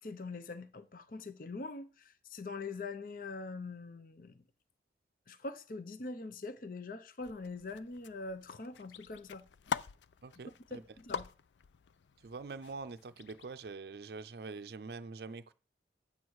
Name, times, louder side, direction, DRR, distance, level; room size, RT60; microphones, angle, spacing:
voice 1, 0.0-4.4 5.3-9.4 10.5-11.3, left 3 dB, 50° left, 0.6 m, -43 dB
sound 1, 7.2-13.7, left 6 dB, 85° left, 0.4 m, -45 dB
voice 2, 10.2-10.8 12.2-15.5, right 4 dB, 60° right, 0.5 m, -45 dB
9.5 x 8.1 x 4.7 m
head